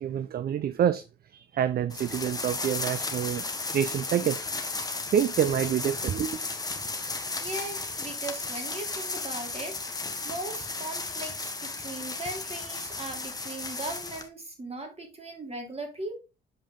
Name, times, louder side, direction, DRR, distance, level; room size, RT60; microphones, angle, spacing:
voice 1, 0.0-1.0 1.3-3.5 3.7-4.4 5.1-6.4, right 9 dB, 50° right, 0.5 m, -27 dB
sound 1, 1.9-14.3, left 3 dB, 20° left, 1.3 m, -34 dB
voice 2, 7.4-16.2, right 2 dB, 30° right, 3.0 m, -38 dB
7.4 x 5.1 x 3.6 m
cardioid pair, 90°, 20 cm